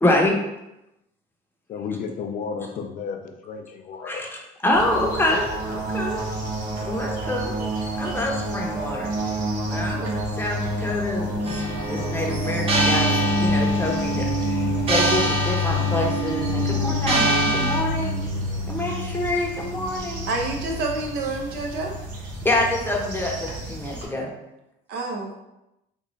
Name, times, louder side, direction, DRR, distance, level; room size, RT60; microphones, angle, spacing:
voice 1, 0.0-0.3 4.0-4.3 4.6-6.2 6.8-7.5 8.0-9.1 9.7-13.1 13.4-18.2 18.7-20.2 22.4-24.3, left 1 dB, 15° left, -1 dB, 0.7 m, -26 dB
voice 2, 1.7-4.2, left 5 dB, 55° left, 4 dB, 0.4 m, -32 dB
sound 1, 4.7-24.0, left 1 dB, 55° right, 1.1 m, -28 dB
sound 2, 11.5-17.8, right 3 dB, 35° right, 0.6 m, -25 dB
voice 3, 20.3-22.0 24.9-25.3, right 2 dB, 80° right, 0 dB, 0.8 m, -28 dB
3.0 x 2.3 x 3.9 m, 0.91 s
cardioid pair, 110°, 17 cm